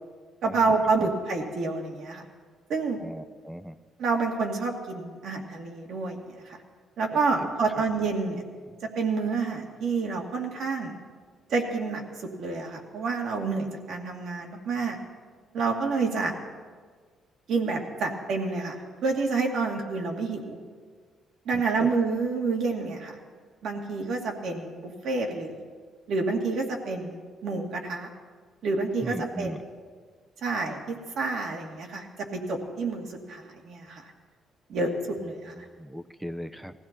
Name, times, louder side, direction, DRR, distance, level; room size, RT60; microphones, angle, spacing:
voice 1, 0.4-2.2 2.7-3.0 4.0-6.6 7.0-8.4 9.0-10.9 11.5-15.0 15.5-16.3 17.5-20.6 21.5-23.2 23.6-25.5 26.1-28.1 28.6-29.6 30.4-32.1 32.3-34.0 34.7-35.5, right 4 dB, 70° right, 1 dB, 2.4 m, -28 dB
voice 2, 3.0-3.8 21.5-21.9 29.0-29.6 35.2-35.3 35.6-36.7, equal, 5° right, 11 dB, 0.7 m, -38 dB
20.0 x 15.5 x 4.4 m, 1.6 s
cardioid pair, 95°, 0 cm